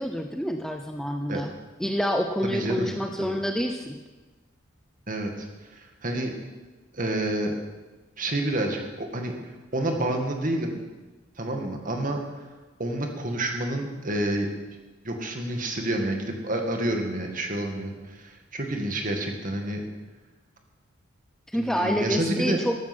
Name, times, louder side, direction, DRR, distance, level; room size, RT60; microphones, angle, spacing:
voice 1, 0.0-1.5 1.8-4.0 21.5-22.8, equal, ahead, 4 dB, 0.7 m, -27 dB
voice 2, 2.4-2.9 3.2-3.4 5.1-6.3 6.9-7.5 8.2-9.3 9.7-10.9 11.4-12.2 12.8-14.5 15.0-19.8 21.5-22.6, right 1 dB, 40° right, 3 dB, 2.1 m, -29 dB
13.5 x 13.0 x 6.2 m, 1.2 s
head